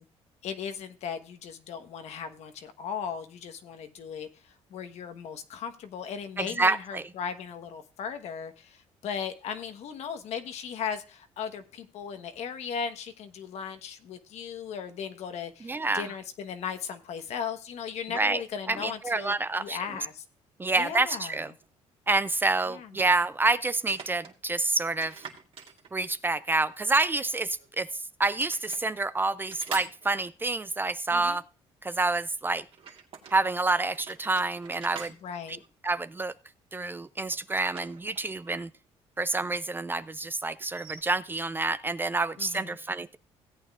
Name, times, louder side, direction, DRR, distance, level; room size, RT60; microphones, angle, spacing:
voice 1, 0.4-20.2 20.8-21.5 22.7-22.9 31.1-31.4 35.2-35.6 42.4-42.8, left 7 dB, 70° left, 1.2 m, -37 dB
voice 2, 6.4-7.1 15.6-16.1 18.1-18.4 18.7-19.8 20.6-21.5 22.1-25.2 25.9-31.4 31.8-32.6 33.3-35.1 35.5-35.6 35.8-36.3 36.7-38.7 39.2-43.2, right 3 dB, 15° right, 0.4 m, -28 dB
sound 1, 21.6-21.7 23.7-24.4 25.0-26.3 27.3-28.0 28.3-28.8 29.5-30.6 32.7-33.4 33.9-36.3 37.3-38.6 38.8-38.9 40.6-41.0, right 6 dB, 50° right, 2.1 m, -45 dB
17.0 x 8.8 x 2.4 m
cardioid pair, 110°, 12 cm